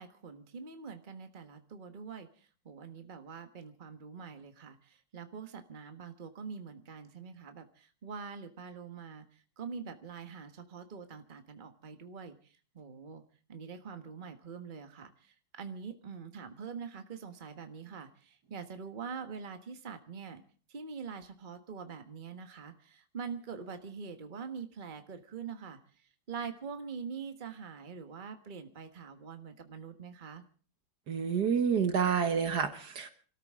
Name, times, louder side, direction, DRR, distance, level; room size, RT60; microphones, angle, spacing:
voice 1, 0.0-13.2 13.5-20.4 20.7-25.8 26.3-30.4, right 6 dB, 30° right, 7 dB, 1.4 m, -44 dB
voice 2, 31.1-33.1, right 7 dB, 60° right, 9 dB, 1.8 m, -28 dB
28.0 x 13.5 x 3.7 m, 0.40 s
omnidirectional pair, 2.0 m